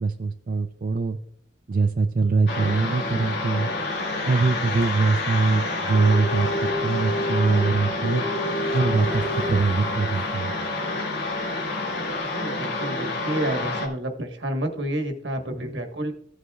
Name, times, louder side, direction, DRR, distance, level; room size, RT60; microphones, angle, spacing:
voice 1, 0.0-1.2 1.7-3.7 4.3-6.5 6.8-8.2 8.7-10.5, right 4 dB, 50° right, 6 dB, 0.4 m, -23 dB
sound 1, 2.5-13.9, left 2 dB, 70° left, 2.3 m, -27 dB
voice 2, 12.2-16.1, right 1 dB, 75° right, 5 dB, 1.4 m, -29 dB
15.5 x 8.0 x 2.4 m, 0.67 s
head